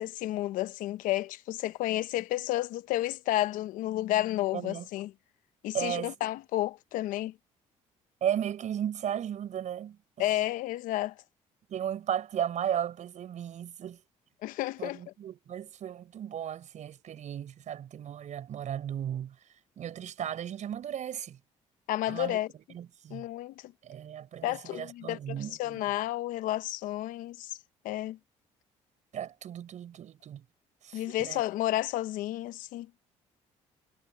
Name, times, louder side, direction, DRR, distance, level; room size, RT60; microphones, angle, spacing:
voice 1, 0.0-5.1 5.6-7.3 10.2-11.1 14.4-15.0 21.9-22.5 23.1-23.7 24.4-27.6 27.8-28.2 30.9-32.9, left 15 dB, 80° left, 0.9 m, -31 dB
voice 2, 4.5-4.9 5.7-6.1 8.2-10.3 11.7-14.0 14.8-19.3 19.8-21.4 22.1-23.3 23.8-25.8 29.1-30.4 30.8-31.4, right 10 dB, 60° right, 6.4 m, -35 dB
supercardioid pair, 75°, 14 cm